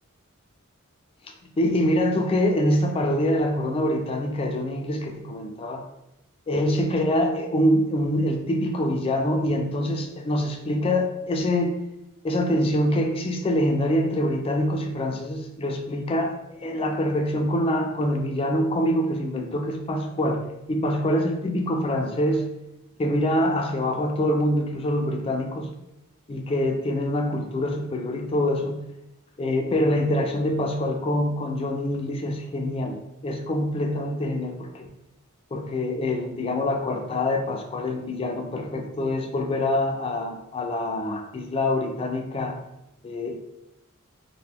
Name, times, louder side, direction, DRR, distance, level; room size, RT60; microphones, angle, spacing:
voice 1, 1.6-5.8 6.5-11.8 12.2-22.5 23.0-25.7 26.3-28.8 29.4-34.9 35.5-42.6 43.0-43.3, left 1 dB, 25° left, 4 dB, 0.3 m, -25 dB
2.8 x 2.1 x 3.5 m, 0.89 s
head